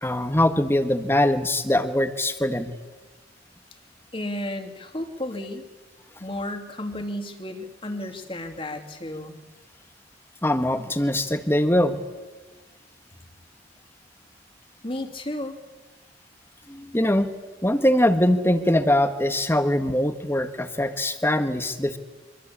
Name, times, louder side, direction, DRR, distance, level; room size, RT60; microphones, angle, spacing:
voice 1, 0.0-2.7 10.4-12.0 16.7-17.3 17.6-22.0, left 1 dB, 15° left, 8 dB, 1.6 m, -22 dB
voice 2, 4.1-5.6 6.2-9.4 14.8-15.6, left 1 dB, 30° left, 5 dB, 2.7 m, -33 dB
25.5 x 24.5 x 8.7 m, 1.2 s
head